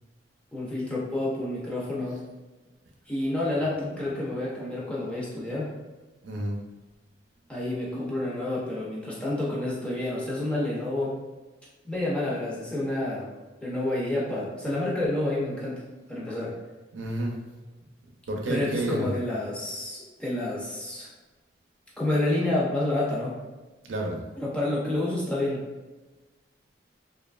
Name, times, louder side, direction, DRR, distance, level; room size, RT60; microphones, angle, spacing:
voice 1, 0.5-2.2 3.1-5.7 7.5-11.1 11.8-13.3 13.6-15.8 16.1-16.5 18.5-21.1 22.0-23.4 24.4-25.6, left 1 dB, 5° left, -6 dB, 0.6 m, -29 dB
voice 2, 6.2-6.6 16.9-17.3 18.3-19.2 23.8-24.2, right 1 dB, 90° right, 0 dB, 0.5 m, -30 dB
3.0 x 2.3 x 2.3 m, 1.2 s
head